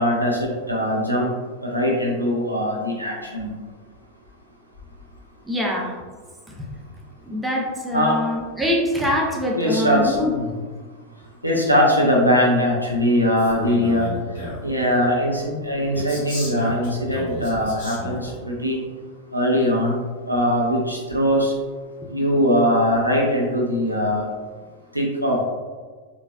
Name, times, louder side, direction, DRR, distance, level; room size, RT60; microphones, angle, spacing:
voice 1, 0.0-1.3 1.6-3.5 7.9-8.2 9.5-10.5 11.4-14.1 14.6-18.8 19.3-20.0 20.3-21.5 22.1-24.3 24.9-25.4, equal, 90° right, -3 dB, 0.6 m, -21 dB
voice 2, 5.4-6.0 7.2-10.3, left 1 dB, 5° right, -2 dB, 0.5 m, -24 dB
Male speech man speaking, 13.4-14.7 15.9-18.4, equal, 60° left, 1.2 m, -32 dB
3.8 x 2.4 x 2.3 m, 1.5 s
figure-of-eight pair, 90°, 0 cm